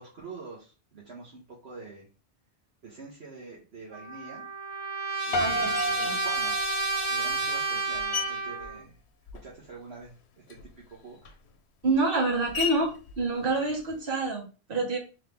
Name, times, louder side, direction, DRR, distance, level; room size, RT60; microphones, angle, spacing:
voice 1, 0.0-2.1 2.8-4.5 5.2-6.7 7.1-9.0 9.4-10.1 10.5-11.4, right 4 dB, 75° right, -4 dB, 1.4 m, -46 dB
Trumpet, 3.9-8.8, right 3 dB, 30° right, 0.6 m, -30 dB
Piano, 5.3-7.6, left 1 dB, 65° left, 0.7 m, -32 dB
voice 2, 5.4-5.8 11.8-15.0, right 2 dB, 60° right, 0 dB, 1.4 m, -27 dB
Screech, 5.8-6.2 7.0-9.7 10.0-14.3, left 8 dB, 90° left, 0.9 m, -40 dB
3.6 x 3.2 x 3.4 m, 0.33 s
omnidirectional pair, 1.1 m